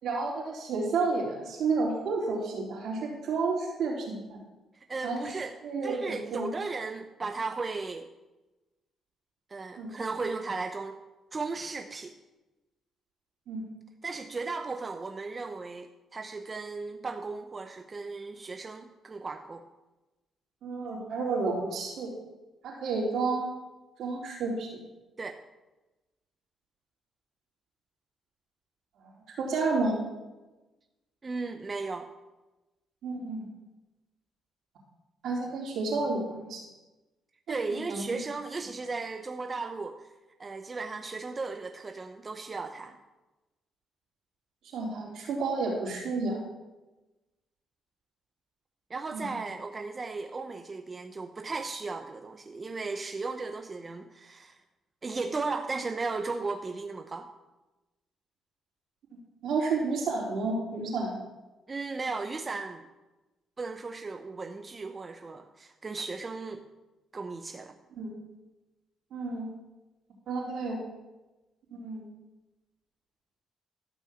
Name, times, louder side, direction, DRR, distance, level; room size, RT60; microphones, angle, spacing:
voice 1, 0.0-4.4 5.0-5.2 5.6-6.5 9.8-9.9 13.5-13.6 20.6-22.1 22.6-23.5 24.0-24.7 29.0-29.1 29.4-30.0 33.0-33.4 35.2-36.6 37.5-38.1 44.7-46.4 49.1-49.3 59.4-61.1 68.0-68.1 69.1-69.5 70.3-70.8 71.7-72.0, right 3 dB, 70° right, -2 dB, 3.8 m, -31 dB
voice 2, 4.7-5.5 5.8-8.1 9.5-11.0 11.3-12.1 14.0-19.6 25.2-25.4 31.2-32.1 37.5-40.1 40.4-43.0 48.9-54.6 55.0-57.3 61.7-62.8 63.6-66.6 67.1-67.7, right 3 dB, 30° right, 5 dB, 0.8 m, -36 dB
13.5 x 6.3 x 7.1 m, 1.1 s
cardioid pair, 90°, 0 cm